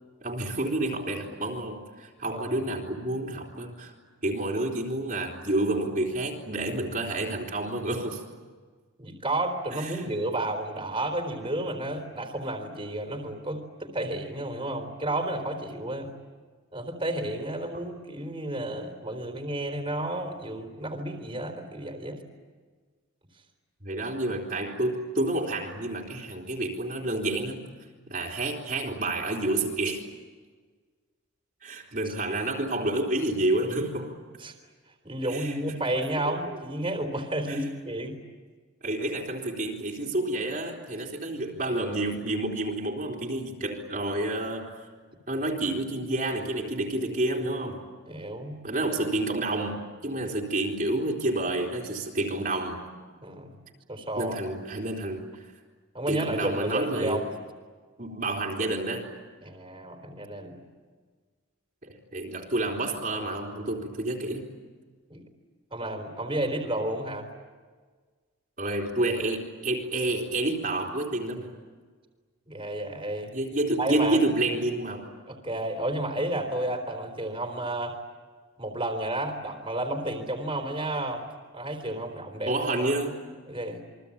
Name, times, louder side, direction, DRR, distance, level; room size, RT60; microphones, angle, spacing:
voice 1, 0.2-3.9 4.2-8.2 9.7-10.0 17.7-17.8 23.8-27.7 28.1-30.1 31.6-34.1 35.2-35.8 36.3-36.4 37.5-37.6 38.8-44.8 45.3-47.8 48.6-52.9 54.2-55.5 56.1-57.3 58.0-59.1 61.8-64.5 68.6-71.5 73.3-75.1 82.5-83.2, right 2 dB, 40° right, -1 dB, 3.6 m, -29 dB
voice 2, 2.3-2.7 9.0-16.1 16.7-22.2 34.4-34.5 35.0-38.2 48.1-48.6 53.2-53.5 53.9-54.5 55.9-57.3 59.4-60.7 65.1-65.2 65.7-67.3 72.5-73.3 73.8-74.2 75.3-78.0 78.6-81.3 81.5-82.5 83.5-83.8, right 1 dB, 25° right, 3 dB, 3.7 m, -31 dB
28.5 x 24.0 x 8.7 m, 1.5 s
head